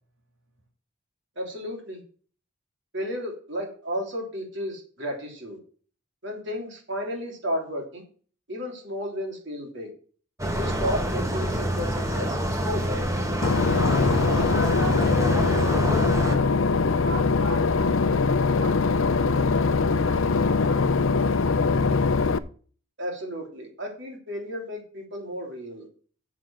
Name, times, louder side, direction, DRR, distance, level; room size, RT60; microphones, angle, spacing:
voice 1, 1.4-2.0 2.9-5.6 6.2-8.0 8.5-9.9 10.6-13.2 23.0-25.9, equal, 60° right, 1 dB, 3.3 m, -33 dB
sound 1, 10.4-16.4, right 1 dB, 15° right, 1.5 m, -27 dB
Boat Water vehicle / Engine, 13.4-22.4, left 4 dB, 75° left, 0.6 m, -22 dB
voice 2, 14.5-21.4, right 2 dB, 80° right, 0 dB, 2.2 m, -40 dB
7.4 x 6.9 x 7.4 m, 0.42 s
head